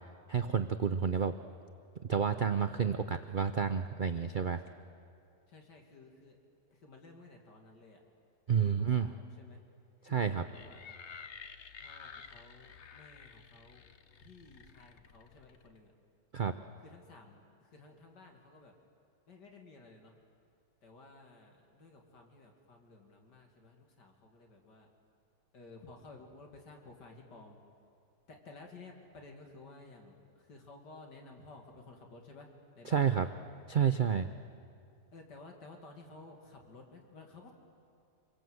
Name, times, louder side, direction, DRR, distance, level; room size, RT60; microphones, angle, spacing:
voice 1, 0.3-1.3 2.1-4.6 8.5-9.1 10.0-10.4 16.3-16.5 32.9-33.3 33.7-34.3, right 7 dB, 70° right, 9 dB, 0.4 m, -30 dB
voice 2, 5.5-6.4 6.7-8.0 8.5-9.6 10.0-11.0 11.8-13.8 14.2-15.9 16.8-18.7 19.3-20.1 20.8-24.9 25.5-27.6 28.3-32.5 32.8-33.3 35.1-37.5, left 3 dB, 80° left, 2 dB, 2.9 m, -54 dB
sound 1, 10.5-15.8, left 6 dB, 50° left, 1.0 m, -52 dB
27.0 x 22.5 x 7.9 m, 2.4 s
omnidirectional pair, 1.8 m